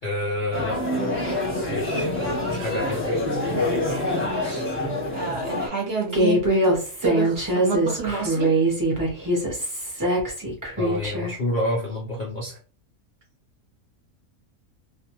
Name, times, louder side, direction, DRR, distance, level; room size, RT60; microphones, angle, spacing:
voice 1, 0.0-0.8 1.7-3.2 10.8-12.6, left 1 dB, 85° left, -1 dB, 0.4 m, -29 dB
sound 1, 0.5-5.7, left 1 dB, 10° left, 0.7 m, -26 dB
voice 2, 4.2-4.7 5.1-6.7 7.0-8.5, right 5 dB, 50° right, -1 dB, 0.8 m, -29 dB
Human voice, 6.1-11.3, right 1 dB, 25° right, 0.4 m, -23 dB
2.5 x 2.2 x 2.9 m, 0.40 s
omnidirectional pair, 1.6 m